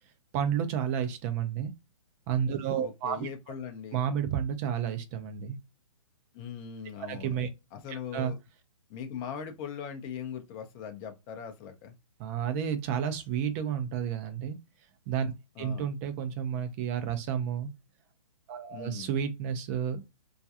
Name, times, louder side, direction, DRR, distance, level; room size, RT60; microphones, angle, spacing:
voice 1, 0.3-1.7 2.3-3.3 3.9-5.6 7.1-7.5 7.9-8.3 12.2-14.6 15.1-15.3 15.6-17.7 18.5-20.0, right 8 dB, 25° right, 0.5 m, -31 dB
voice 2, 2.8-4.1 6.3-7.3 7.7-8.4 8.9-11.9 15.6-15.8 18.7-19.2, left 7 dB, 25° left, 0.6 m, -40 dB
2.3 x 2.2 x 2.8 m
figure-of-eight pair, 130°, 18 cm